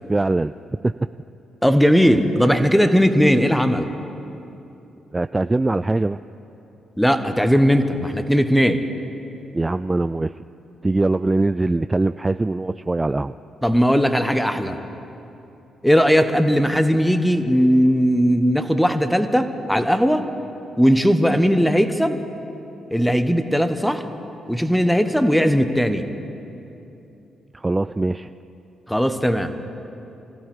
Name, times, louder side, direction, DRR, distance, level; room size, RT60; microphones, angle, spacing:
voice 1, 0.1-0.5 0.8-0.9 5.1-6.2 9.5-10.4 10.8-13.3 27.5-28.3, right 2 dB, 25° right, 12 dB, 0.3 m, -22 dB
voice 2, 1.6-3.9 7.0-8.8 13.6-14.8 15.8-20.3 20.8-22.2 22.9-24.0 24.5-26.0 28.9-29.5, equal, ahead, 9 dB, 1.2 m, -18 dB
25.0 x 15.5 x 3.6 m, 2.9 s
hypercardioid pair, 40°, 0 cm